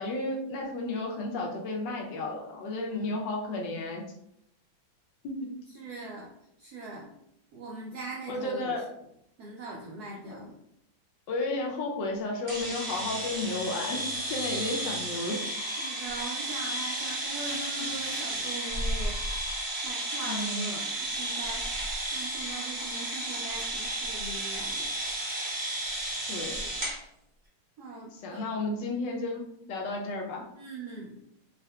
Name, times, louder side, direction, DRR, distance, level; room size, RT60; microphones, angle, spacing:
voice 1, 0.0-4.0 5.2-5.5 6.0-6.1 8.3-8.9 11.3-15.4 20.2-20.7 26.3-26.6 28.1-30.4, left 2 dB, 75° left, 0 dB, 1.1 m, -33 dB
voice 2, 5.7-6.3 6.6-7.1 7.5-8.7 9.4-10.6 15.8-24.9 26.4-26.9 27.8-28.6 30.5-31.2, right 2 dB, 80° right, -2 dB, 0.8 m, -41 dB
sound 1, 12.5-27.0, right 1 dB, 30° right, 1.0 m, -33 dB
3.6 x 2.7 x 2.2 m, 0.77 s
omnidirectional pair, 2.2 m